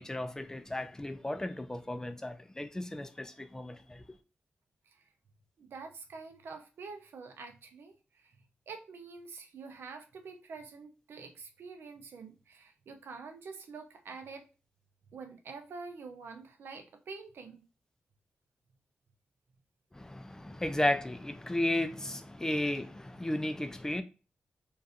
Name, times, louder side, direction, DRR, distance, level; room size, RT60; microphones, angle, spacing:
voice 1, 0.0-4.0 19.9-24.0, left 1 dB, 15° left, 0.3 m, -34 dB
voice 2, 5.6-8.4 8.7-14.4 15.1-17.6, right 4 dB, 85° right, 0.5 m, -47 dB
2.4 x 2.4 x 2.5 m
cardioid pair, 75°, 4 cm